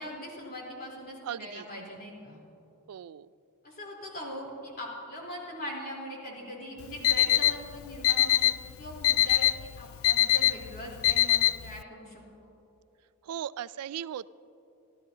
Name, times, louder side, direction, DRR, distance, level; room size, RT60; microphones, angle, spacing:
voice 1, 0.0-2.4 3.6-8.5 8.8-9.5 9.8-12.5, left 1 dB, 45° left, -3 dB, 3.8 m, -41 dB
voice 2, 1.2-1.7 2.9-3.3 13.2-14.3, right 9 dB, 75° right, 18 dB, 0.3 m, -37 dB
Alarm, 6.8-11.8, left 13 dB, 65° left, 0.4 m, -25 dB
25.5 x 14.0 x 2.9 m, 2.9 s
head